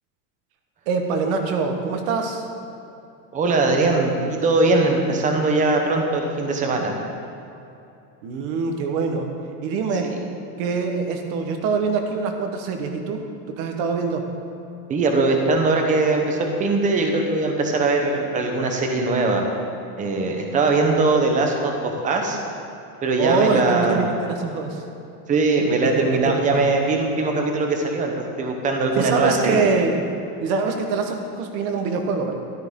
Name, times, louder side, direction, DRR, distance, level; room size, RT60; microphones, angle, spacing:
voice 1, 0.9-2.5 8.2-9.3 9.6-10.1 10.6-14.3 23.2-24.8 26.1-26.6 29.0-30.1 30.4-32.3, right 4 dB, 45° right, 4 dB, 1.2 m, -24 dB
voice 2, 3.3-6.9 10.0-10.2 14.9-19.4 20.0-22.4 23.0-24.1 25.3-28.1 28.4-29.7, right 3 dB, 15° right, 2 dB, 0.9 m, -21 dB
13.0 x 12.5 x 3.7 m, 2.7 s
cardioid pair, 180°, 47 cm